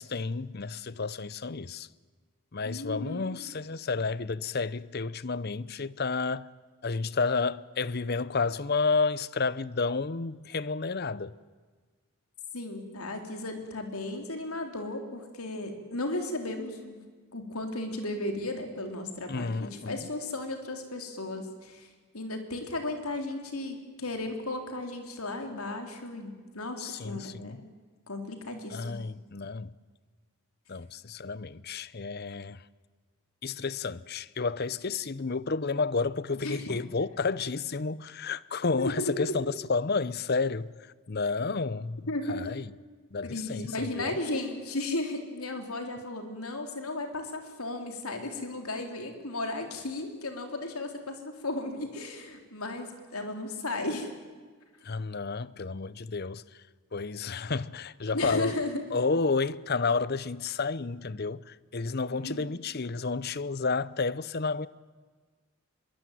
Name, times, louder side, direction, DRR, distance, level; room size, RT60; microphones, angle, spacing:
voice 1, 0.0-1.9 2.5-6.5 6.8-11.3 19.3-20.1 26.8-27.6 28.7-29.7 30.7-32.6 33.4-40.7 41.1-42.7 43.1-44.2 54.8-56.4 56.9-58.6 58.9-64.7, left 4 dB, 45° left, 0.7 m, -31 dB
voice 2, 2.6-3.4 12.5-17.0 17.3-21.9 22.1-27.7 28.1-29.1 36.4-36.7 38.8-38.9 39.2-39.3 42.1-42.5 43.2-54.1 58.1-58.8 62.1-62.5, left 2 dB, 90° left, 3.9 m, -35 dB
24.0 x 22.5 x 9.4 m
head